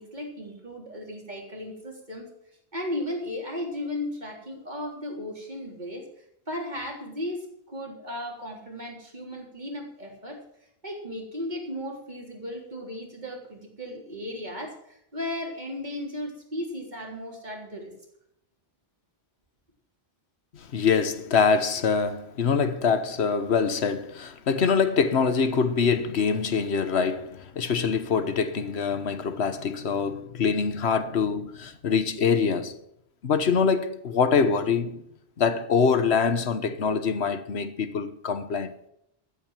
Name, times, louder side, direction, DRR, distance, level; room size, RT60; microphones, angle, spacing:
voice 1, 0.0-2.3 2.7-6.0 6.5-10.4 10.8-17.9, left 1 dB, 45° right, 3.8 m, -35 dB
voice 2, 20.5-32.8 33.2-35.0 35.4-38.7, left 5 dB, 80° left, 1.4 m, -24 dB
14.5 x 8.1 x 7.5 m
omnidirectional pair, 1.1 m